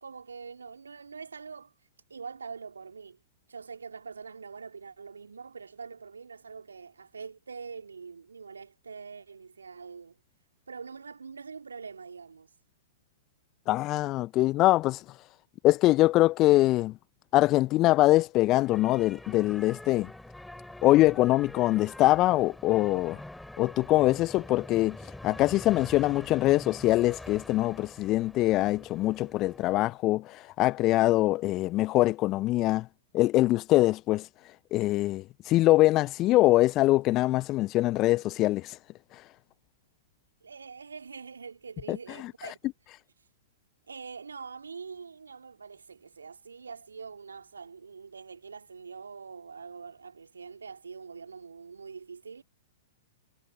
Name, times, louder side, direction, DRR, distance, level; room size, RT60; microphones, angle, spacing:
voice 1, 0.0-1.7 2.1-3.2 3.5-10.2 10.7-12.5 40.4-42.7 43.9-52.4, right 5 dB, 75° right, 2.4 m, -44 dB
voice 2, 13.7-15.2 15.6-16.9 17.3-20.1 20.8-23.2 23.6-32.9 33.1-38.8 39.1-39.2 41.9-42.0 42.4-42.5, left 17 dB, 35° left, 0.6 m, -23 dB
sound 1, 18.6-29.9, left 1 dB, 5° left, 2.8 m, -45 dB
figure-of-eight pair, 105°, 0 cm